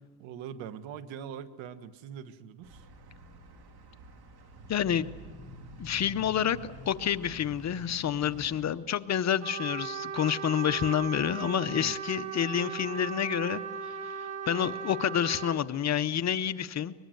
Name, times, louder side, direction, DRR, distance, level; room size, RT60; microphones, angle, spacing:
voice 1, 0.2-2.8 11.7-11.9, right 8 dB, 70° right, 12 dB, 1.5 m, -42 dB
sound 1, 2.6-8.7, right 1 dB, 50° right, 3.0 m, -48 dB
voice 2, 4.7-5.1 5.8-16.9, left 9 dB, 35° left, 11 dB, 0.7 m, -29 dB
Trumpet, 9.4-15.6, right 7 dB, 30° right, 1.5 m, -37 dB
23.0 x 21.0 x 7.9 m, 1.5 s
cardioid pair, 125°, 47 cm